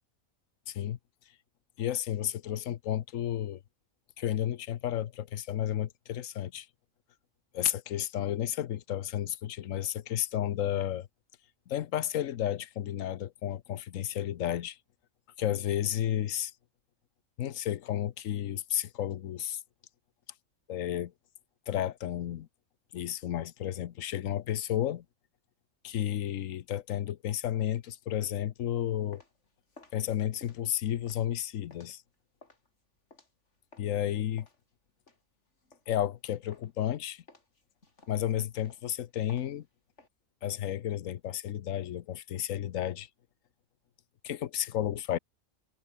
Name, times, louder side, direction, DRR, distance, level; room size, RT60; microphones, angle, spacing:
voice 1, 0.7-1.0 1.8-3.6 4.2-6.7 7.5-11.1 11.7-14.8 15.4-16.5 17.4-19.6 20.7-21.1 21.7-22.5 22.9-25.0 25.8-29.2 29.9-32.0 33.8-34.5 35.9-37.2 38.1-39.7 40.4-43.1 44.2-45.2, left 11 dB, 90° left, 1.2 m, -32 dB
sound 1, 28.8-34.0 34.4-36.2 36.5-36.9 37.3-40.1, left 3 dB, 65° left, 4.0 m, -58 dB
omnidirectional pair, 1.3 m